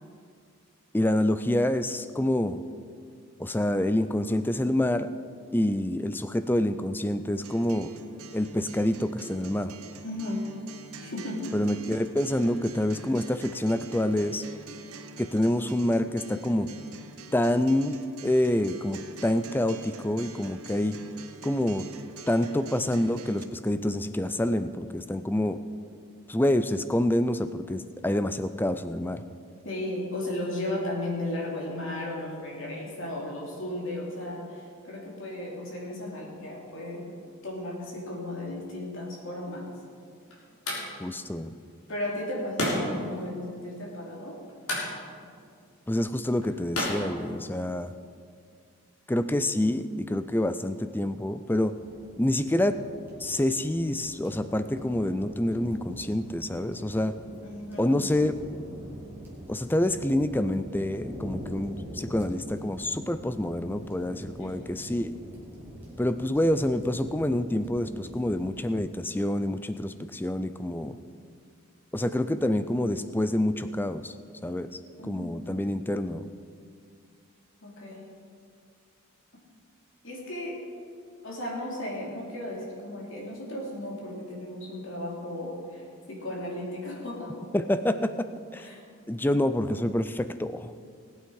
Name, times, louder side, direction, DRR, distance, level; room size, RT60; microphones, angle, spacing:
voice 1, 0.9-2.6 3.4-5.1 5.5-7.9 8.3-9.7 11.5-14.4 15.2-16.7 17.3-21.0 21.4-21.8 22.3-25.6 26.3-29.2 41.0-41.5 45.9-47.9 49.1-51.7 52.2-52.8 53.2-57.1 57.8-58.3 59.5-65.1 66.0-71.0 71.9-74.1 74.4-76.3 87.5-88.7 89.1-90.7, left 1 dB, 10° left, 11 dB, 0.4 m, -27 dB
Acoustic guitar, 7.4-23.4, right 3 dB, 80° right, 0.9 m, -46 dB
voice 2, 10.0-10.5 11.0-11.5 29.6-37.1 37.4-39.7 41.9-44.4 57.4-58.1 64.4-64.8 75.0-75.5 77.6-78.1 80.0-80.6 81.2-87.3 88.6-88.8, left 1 dB, 60° left, -2 dB, 2.9 m, -35 dB
sound 1, 39.4-48.0, left 1 dB, 85° left, 3.8 m, -36 dB
sound 2, 51.6-68.5, equal, 10° right, 2.3 m, -44 dB
19.0 x 8.6 x 4.8 m, 2.2 s
head